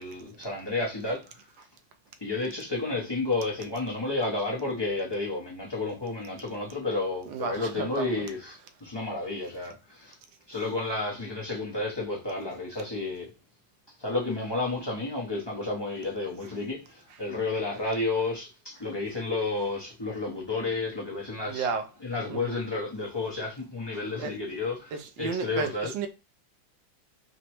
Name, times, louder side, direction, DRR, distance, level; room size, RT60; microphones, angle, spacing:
voice 1, 0.0-1.4 2.2-10.2 10.5-13.3 14.0-21.7 22.0-25.9, left 3 dB, 45° left, 0.3 m, -31 dB
voice 2, 7.3-8.2 21.5-21.9 22.3-22.6 24.2-24.3 24.9-26.1, right 5 dB, 80° right, 1.3 m, -32 dB
5.0 x 2.1 x 2.9 m
omnidirectional pair, 2.0 m